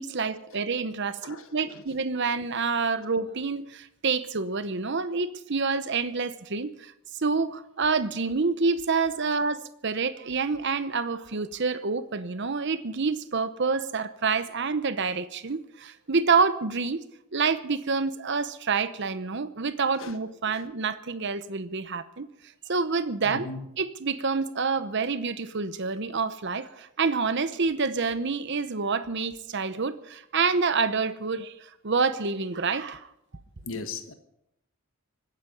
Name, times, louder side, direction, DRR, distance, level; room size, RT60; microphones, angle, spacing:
voice 1, 0.0-17.1 17.3-22.3 22.7-23.5 23.8-33.1, right 4 dB, 55° right, 0.9 m, -27 dB
voice 2, 1.2-1.7 20.0-20.1 23.2-23.6 33.6-34.1, left 4 dB, 65° left, 1.4 m, -37 dB
24.0 x 10.0 x 5.3 m
head